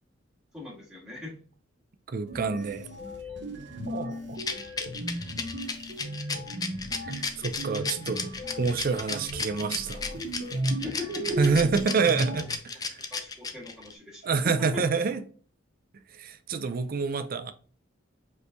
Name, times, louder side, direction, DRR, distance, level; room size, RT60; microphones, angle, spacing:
voice 1, 0.5-1.4 10.8-11.7 13.1-14.8, left 3 dB, 5° right, 1.6 m, -39 dB
voice 2, 2.1-2.9 3.9-4.4 7.0-8.3 8.6-10.0 11.4-12.5 12.7-13.0 14.2-15.2 16.1-17.5, right 4 dB, 50° right, 0.4 m, -27 dB
sound 1, 2.3-12.6, right 1 dB, 65° right, 1.1 m, -36 dB
Rattle, 4.4-13.9, left 4 dB, 20° left, 0.4 m, -33 dB
5.1 x 3.1 x 2.7 m
head